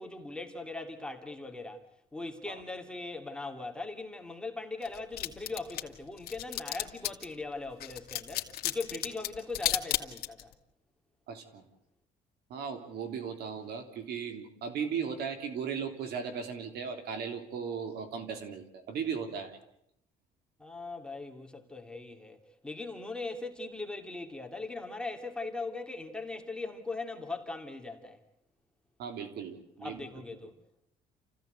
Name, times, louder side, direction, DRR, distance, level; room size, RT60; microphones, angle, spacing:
voice 1, 0.0-1.8 2.1-10.5 20.6-28.2 29.8-30.5, left 3 dB, 5° left, 2.8 m, -40 dB
sound 1, 4.8-7.3 7.8-10.5, left 14 dB, 70° left, 2.0 m, -33 dB
voice 2, 11.3-11.7 12.5-19.6 29.0-30.0, right 6 dB, 70° right, 3.3 m, -37 dB
28.5 x 16.0 x 8.0 m
cardioid pair, 110°, 17 cm